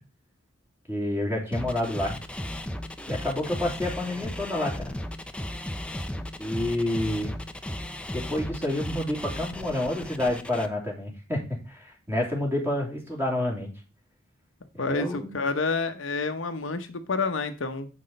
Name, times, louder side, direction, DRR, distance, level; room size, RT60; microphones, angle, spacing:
voice 1, 0.9-2.2 3.1-4.9 6.4-7.3 8.1-13.7 14.7-15.4, left 1 dB, 10° right, -1 dB, 2.8 m, -29 dB
sound 1, 1.5-10.7, left 1 dB, 5° left, 0.6 m, -35 dB
voice 2, 14.8-17.9, left 4 dB, 65° left, 7 dB, 0.9 m, -29 dB
7.7 x 5.9 x 5.3 m, 0.32 s
head